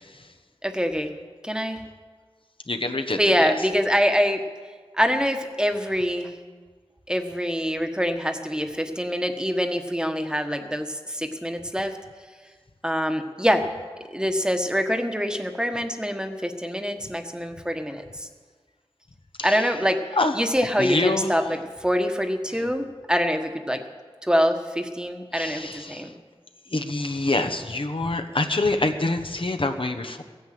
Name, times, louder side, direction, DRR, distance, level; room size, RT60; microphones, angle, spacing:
voice 1, 0.6-1.1 1.4-1.8 3.2-4.4 5.0-6.3 7.1-11.9 12.8-13.6 14.1-18.0 19.4-20.0 20.3-23.8 24.3-26.1, equal, 10° right, 6 dB, 1.3 m, -25 dB
voice 2, 2.7-3.5 19.4-19.7 20.2-20.3 20.8-21.3 25.3-26.0 26.7-30.2, left 2 dB, 60° left, 6 dB, 1.2 m, -26 dB
16.0 x 9.9 x 7.7 m, 1.5 s
wide cardioid pair, 50°, 10 cm